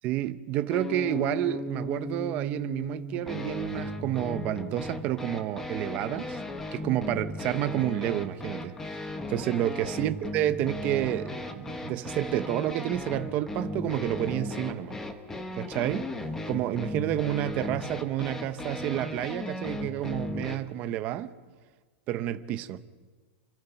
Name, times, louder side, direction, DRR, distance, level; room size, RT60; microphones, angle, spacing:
voice 1, 0.0-6.4 6.7-15.0 15.6-16.1 16.5-21.3 22.1-22.8, right 13 dB, 25° right, 0.8 m, -30 dB
sound 1, 0.7-20.6, left 2 dB, 5° left, 1.1 m, -36 dB
28.0 x 24.0 x 5.8 m
supercardioid pair, 180°, 7 cm